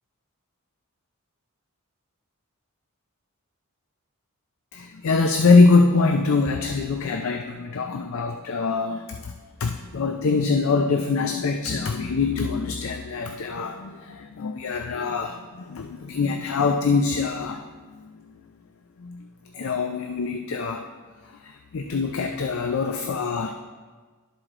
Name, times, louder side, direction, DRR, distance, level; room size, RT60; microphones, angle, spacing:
voice 1, 4.7-9.3 9.6-18.3 19.0-19.3 19.5-20.9 21.2-23.5, left 4 dB, 65° left, 5 dB, 0.4 m, -23 dB
12.0 x 4.8 x 3.7 m, 1.4 s
head